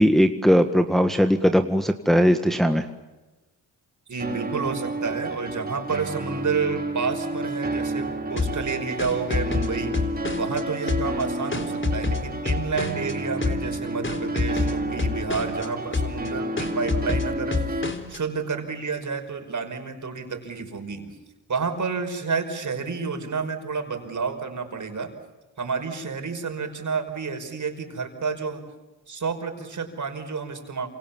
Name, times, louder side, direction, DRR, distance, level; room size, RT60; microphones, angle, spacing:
voice 1, 0.0-2.9, equal, ahead, 6 dB, 1.7 m, -19 dB
voice 2, 4.1-9.9 10.4-17.6 18.1-21.1 21.5-25.1 25.6-28.6 29.1-30.9, right 5 dB, 45° right, 6 dB, 5.5 m, -30 dB
sound 1, 4.2-17.9, right 1 dB, 20° right, 3.2 m, -30 dB
sound 2, 8.4-10.6 10.9-13.1 13.4-13.8 14.0-15.7 15.9-16.3 16.6-18.2, left 4 dB, 30° left, 3.9 m, -28 dB
28.5 x 26.5 x 7.3 m, 1.2 s
supercardioid pair, 60°, 40 cm